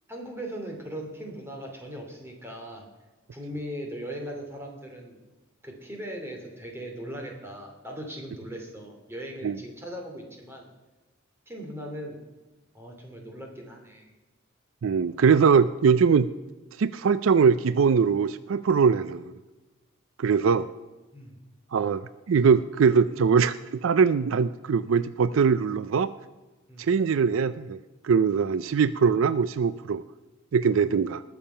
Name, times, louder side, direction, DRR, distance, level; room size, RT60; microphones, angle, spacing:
voice 1, 0.1-2.9 3.3-5.2 5.6-10.7 11.5-12.2 12.7-14.1 20.4-20.5 21.1-21.3 26.7-26.9, equal, 10° right, 1 dB, 2.7 m, -39 dB
voice 2, 14.8-16.3 16.8-19.3 20.2-20.7 21.7-22.0 22.3-26.1 26.8-27.8 28.0-30.0 30.5-31.2, right 6 dB, 70° right, 15 dB, 0.4 m, -22 dB
20.0 x 7.1 x 5.6 m, 1.2 s
head